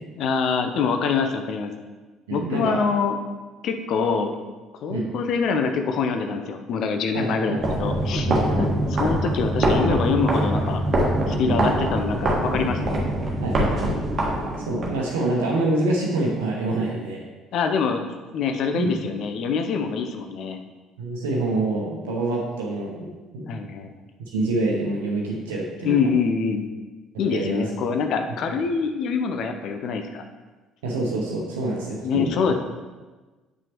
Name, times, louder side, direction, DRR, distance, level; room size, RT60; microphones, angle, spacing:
voice 1, 0.1-1.7 2.3-3.2 3.6-4.3 4.8-8.3 8.6-10.8 11.3-13.0 17.5-20.6 23.5-23.9 25.8-26.7 27.2-30.2 32.0-32.5, left 5 dB, 50° left, 6 dB, 0.7 m, -25 dB
voice 2, 2.3-2.8 4.9-5.1 7.1-7.8 8.3-8.8 11.4-11.8 13.4-13.9 14.7-17.2 18.7-19.1 21.0-23.6 24.3-26.1 27.1-27.7 30.8-32.5, right 2 dB, 70° right, -3 dB, 1.0 m, -26 dB
sound 1, 7.5-14.9, right 1 dB, 35° right, 1.6 m, -23 dB
8.5 x 5.9 x 3.0 m, 1.2 s
figure-of-eight pair, 55°, 0 cm